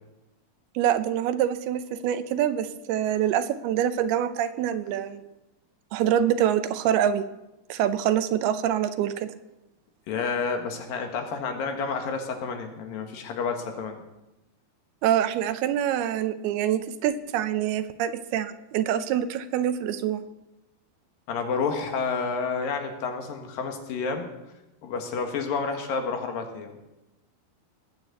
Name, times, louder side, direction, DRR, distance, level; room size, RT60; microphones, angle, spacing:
voice 1, 0.8-5.3 5.9-7.3 7.7-9.3 15.0-20.2, right 10 dB, 80° right, 12 dB, 2.7 m, -25 dB
voice 2, 10.1-14.0 21.3-24.3 24.8-26.8, left 5 dB, 65° left, 5 dB, 3.1 m, -30 dB
19.5 x 8.9 x 7.9 m, 0.96 s
omnidirectional pair, 4.6 m